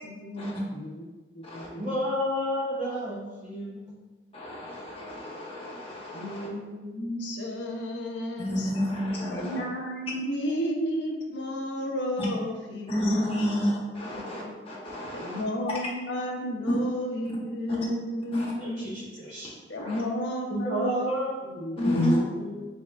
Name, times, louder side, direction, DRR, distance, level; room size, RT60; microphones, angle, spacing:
voice 1, 0.0-1.0 1.3-1.9 6.1-8.7 9.3-13.6 13.9-14.5 15.1-19.0 19.7-21.1 21.4-22.6, equal, 80° left, 1 dB, 0.6 m, -33 dB
voice 2, 1.8-3.9 18.6-19.5 20.5-21.3 22.2-22.3, equal, 45° right, -7 dB, 0.7 m, -31 dB
voice 3, 4.3-6.5 8.4-9.6 12.9-15.4 17.7-17.8 18.3-18.5 19.8-20.0 21.8-22.2, left 1 dB, 35° left, -5 dB, 0.9 m, -30 dB
4.2 x 3.4 x 2.3 m, 1.3 s
head